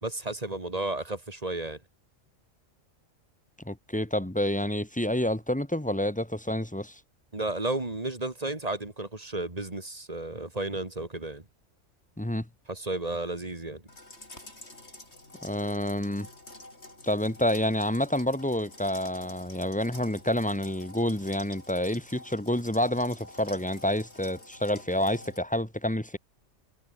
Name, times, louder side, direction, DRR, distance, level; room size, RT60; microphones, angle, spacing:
voice 1, 0.0-1.8 7.3-11.4 12.7-13.8, right 2 dB, 30° right, 2.7 m, -33 dB
voice 2, 3.6-7.0 12.2-12.4 15.4-16.3 17.0-26.2, left 1 dB, 5° left, 1.3 m, -28 dB
sound 1, 13.9-25.4, left 2 dB, 55° left, 5.9 m, -48 dB
omnidirectional pair, 1.4 m